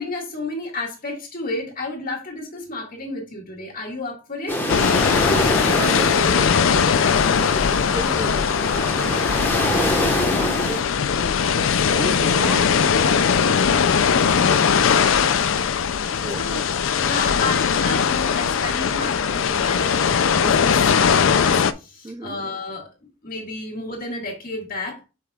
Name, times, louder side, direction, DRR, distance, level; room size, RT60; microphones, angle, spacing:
voice 1, 0.0-4.6 14.1-14.6 16.0-16.7 17.0-22.9 23.2-25.0, left 2 dB, 45° left, 2.0 m, -31 dB
sound 1, 4.5-10.8, left 1 dB, 10° left, 1.3 m, -25 dB
sound 2, 4.7-21.7, left 6 dB, 70° left, 0.5 m, -20 dB
voice 2, 5.0-13.6 16.1-16.4 22.0-22.4, right 2 dB, 20° right, 0.4 m, -35 dB
7.6 x 5.4 x 2.4 m
head